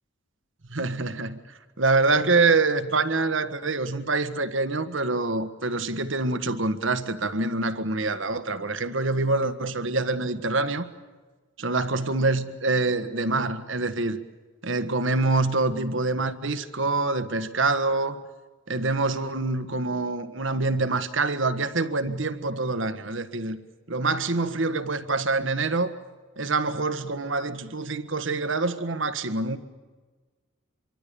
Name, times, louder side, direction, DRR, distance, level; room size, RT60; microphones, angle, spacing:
voice 1, 0.7-1.4 1.8-10.9 11.6-14.2 14.6-18.2 18.7-23.6 23.9-25.9 26.4-29.6, right 3 dB, 65° right, 1.6 m, -25 dB
25.5 x 24.0 x 7.0 m
head